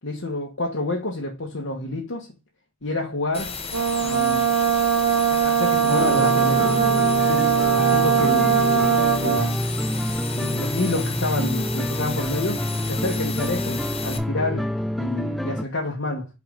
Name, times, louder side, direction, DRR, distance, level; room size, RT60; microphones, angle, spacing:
voice 1, 0.0-2.3 2.8-3.6 4.0-4.5 5.3-6.8 7.2-9.7 10.3-14.7 15.0-16.3, left 2 dB, 70° left, 1.3 m, -29 dB
sound 1, 3.3-14.2, left 5 dB, 30° left, 1.0 m, -33 dB
Brass instrument, 3.7-9.6, right 8 dB, 85° right, 1.4 m, -20 dB
sound 2, 5.9-15.6, equal, ahead, 0.3 m, -27 dB
5.3 x 4.6 x 5.0 m
head